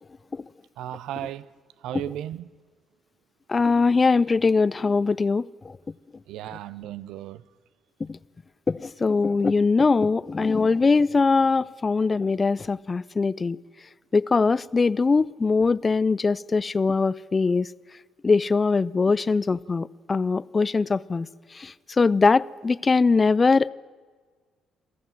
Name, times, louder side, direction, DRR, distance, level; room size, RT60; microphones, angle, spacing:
voice 1, 0.8-1.5 1.8-2.5 6.3-7.4, right 12 dB, 90° right, 0.6 m, -35 dB
voice 2, 3.5-5.7 8.1-8.2 8.7-13.6 14.1-17.7 18.2-21.3 21.5-23.7, left 4 dB, 30° left, 0.5 m, -22 dB
23.5 x 14.5 x 7.6 m
cardioid pair, 90°, 0 cm